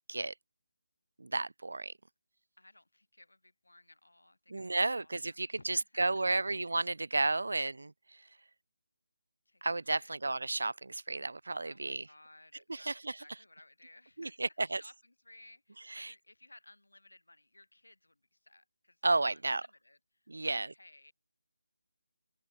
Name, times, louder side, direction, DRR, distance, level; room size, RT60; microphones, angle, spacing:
voice 1, 1.2-1.9 4.5-7.9 9.6-12.1 12.7-13.2 14.2-14.8 15.9-16.1 19.0-19.6 20.3-20.7, right 2 dB, 65° right, 0.8 m, -32 dB
voice 2, 2.6-6.5 7.5-7.6 9.5-9.6 9.9-10.2 11.6-21.1, left 2 dB, 75° left, 5.6 m, -60 dB
open air
figure-of-eight pair, 155°, 0 cm